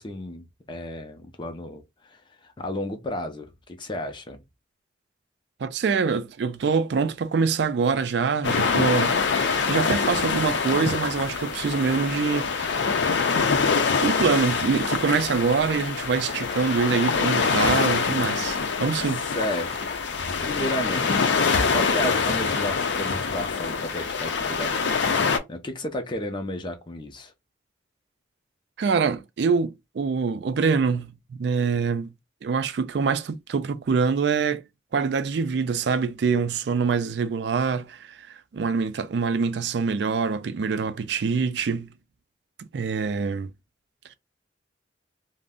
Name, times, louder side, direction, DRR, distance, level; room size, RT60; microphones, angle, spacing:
voice 1, 0.0-1.8 2.1-4.4 19.3-19.9 20.4-21.4 21.7-25.1 25.5-27.3, left 1 dB, 25° left, 0.5 m, -33 dB
voice 2, 5.6-12.8 14.0-19.2 20.6-20.7 28.8-32.1 32.4-34.6 34.9-41.9 42.7-43.5, right 5 dB, 65° right, 0.4 m, -25 dB
Baltic Sea - Kolka Latvia, 8.4-25.4, left 5 dB, 75° left, 0.5 m, -25 dB
2.5 x 2.0 x 3.6 m
head